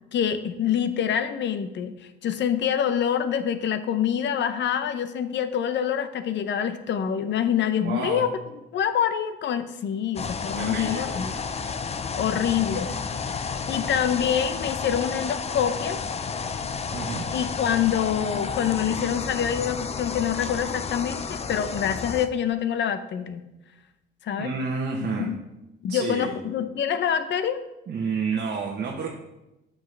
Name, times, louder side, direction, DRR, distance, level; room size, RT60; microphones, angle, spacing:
voice 1, 0.1-1.9 2.2-8.3 8.7-11.3 12.2-12.9 13.3-13.4 13.7-16.0 17.3-23.4 24.2-24.5 25.2-25.4 25.8-27.6, left 9 dB, 65° left, 11 dB, 0.7 m, -26 dB
voice 2, 7.8-8.3 10.6-11.4 16.9-17.2 24.4-25.3 25.9-26.4 27.9-29.1, right 5 dB, 55° right, -1 dB, 1.0 m, -30 dB
sound 1, 10.2-22.3, left 5 dB, 30° left, 0.5 m, -31 dB
8.8 x 6.1 x 3.3 m, 0.97 s
cardioid pair, 90°, 20 cm